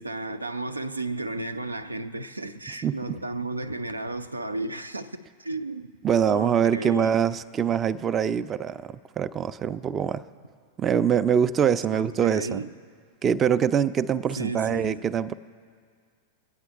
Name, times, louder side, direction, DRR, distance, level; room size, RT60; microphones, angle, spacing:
voice 1, 0.0-6.0 6.3-7.1 11.9-12.7 14.4-15.0, right 2 dB, 90° right, 0.5 m, -33 dB
voice 2, 2.8-3.2 6.0-10.2 10.8-12.6 13.2-15.3, right 8 dB, 25° right, 0.4 m, -24 dB
22.5 x 9.0 x 3.5 m
figure-of-eight pair, 95°, 0 cm